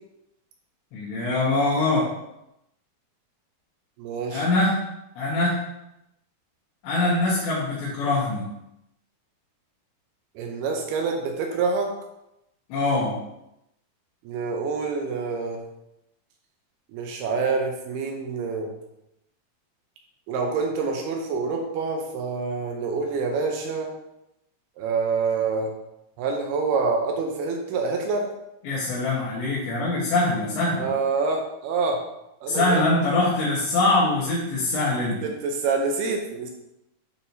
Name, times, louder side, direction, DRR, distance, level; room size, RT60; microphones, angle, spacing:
voice 1, 0.9-2.0 4.3-4.7 5.2-5.6 6.8-8.5 12.7-13.2 28.6-30.9 32.5-35.2, left 2 dB, 90° left, -9 dB, 3.7 m, -23 dB
voice 2, 4.0-4.4 10.4-11.9 14.2-15.6 16.9-18.7 20.3-23.9 24.8-25.7 26.2-28.3 30.8-32.0 32.4-32.9 35.2-36.5, right 4 dB, 80° right, 2 dB, 2.6 m, -26 dB
8.9 x 4.5 x 2.7 m, 0.87 s
omnidirectional pair, 4.9 m